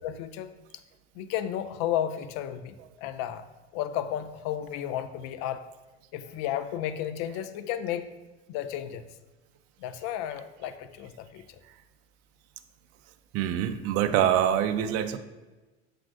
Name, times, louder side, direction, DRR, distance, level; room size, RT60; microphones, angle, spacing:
voice 1, 0.0-0.5 1.2-3.4 3.7-5.6 6.1-8.1 8.5-9.0 9.8-11.6, left 10 dB, 55° left, 12 dB, 0.4 m, -33 dB
voice 2, 13.3-15.2, right 10 dB, 45° right, 9 dB, 0.4 m, -25 dB
7.0 x 2.5 x 2.5 m, 1.2 s
hypercardioid pair, 85°, 32 cm